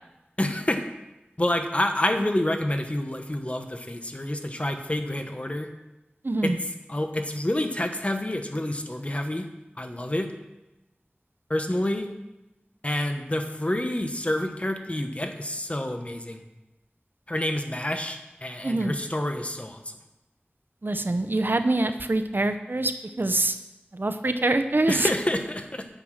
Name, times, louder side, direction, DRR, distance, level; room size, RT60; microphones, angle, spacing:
voice 1, 0.4-0.8 1.4-5.7 6.4-6.5 6.9-9.5 9.8-10.3 11.5-12.1 12.8-16.4 17.3-19.8 24.9-25.9, left 1 dB, 35° left, 6 dB, 1.1 m, -28 dB
voice 2, 6.2-6.6 18.6-18.9 20.8-22.9 23.2-23.6 23.9-25.1, right 2 dB, 60° right, 9 dB, 0.7 m, -24 dB
9.1 x 7.1 x 6.4 m, 0.99 s
wide cardioid pair, 45°, 4 cm